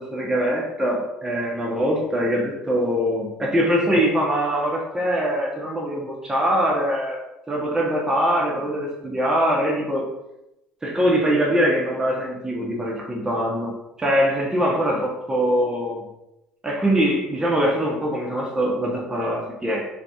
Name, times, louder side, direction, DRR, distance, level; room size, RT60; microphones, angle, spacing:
voice 1, 0.0-7.2 7.5-10.1 10.8-16.0 16.6-19.9, equal, 15° right, -2 dB, 0.8 m, -23 dB
3.9 x 2.9 x 2.3 m, 0.90 s
supercardioid pair, 75°, 4 cm